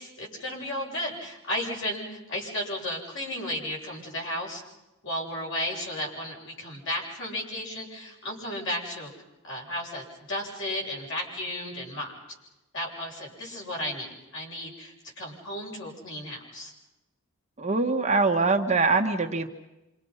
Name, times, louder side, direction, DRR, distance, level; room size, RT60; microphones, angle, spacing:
voice 1, 0.0-4.6 5.0-9.1 9.4-12.1 12.7-16.7, left 1 dB, 60° left, -2 dB, 8.0 m, -34 dB
voice 2, 17.6-19.5, right 3 dB, 30° right, 3 dB, 1.5 m, -23 dB
28.5 x 26.5 x 5.7 m, 0.99 s
head